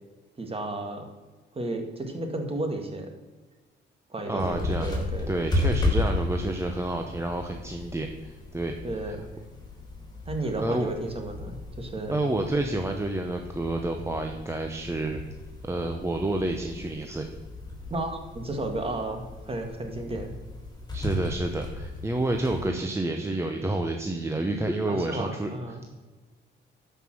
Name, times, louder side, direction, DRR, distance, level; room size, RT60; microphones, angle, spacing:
voice 1, 0.4-1.1 1.5-3.1 4.1-5.3 8.8-9.2 10.3-12.2 17.9-20.3 24.9-25.8, right 2 dB, 30° right, 4 dB, 2.0 m, -33 dB
voice 2, 4.3-4.9 5.3-8.7 10.6-10.9 12.1-15.2 15.6-17.3 20.9-25.5, right 2 dB, 15° right, 3 dB, 0.9 m, -29 dB
sound 1, 4.4-22.7, left 2 dB, 20° left, 3.6 m, -34 dB
12.5 x 5.6 x 6.2 m, 1.3 s
cardioid pair, 90°, 20 cm